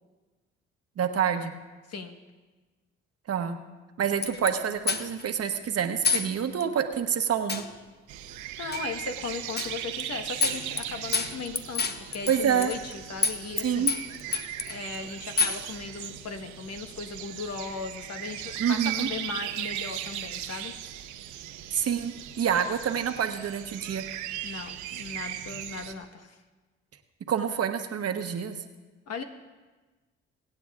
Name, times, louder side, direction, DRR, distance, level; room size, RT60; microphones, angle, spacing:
voice 1, 1.0-1.5 3.3-3.6 4.0-7.6 12.3-12.7 13.6-13.9 18.6-19.1 21.7-24.0 27.3-28.6, right 8 dB, 55° right, 7 dB, 1.1 m, -27 dB
sound 1, 4.2-4.5 4.9-5.3 6.0-6.3 6.6-6.7 7.5-7.7 8.7-8.8 9.6-9.7 10.0-10.1 10.4-10.8 11.1-12.9 13.2-13.6 13.9-14.8 15.4-15.6, left 4 dB, 35° left, 0.9 m, -27 dB
sound 2, 8.1-25.9, right 11 dB, 80° right, 0.8 m, -38 dB
voice 2, 8.6-13.9 14.7-20.7 24.4-26.4 29.1-29.2, left 4 dB, 55° left, 6 dB, 1.3 m, -37 dB
23.5 x 8.9 x 2.4 m, 1.3 s
hypercardioid pair, 50°, 30 cm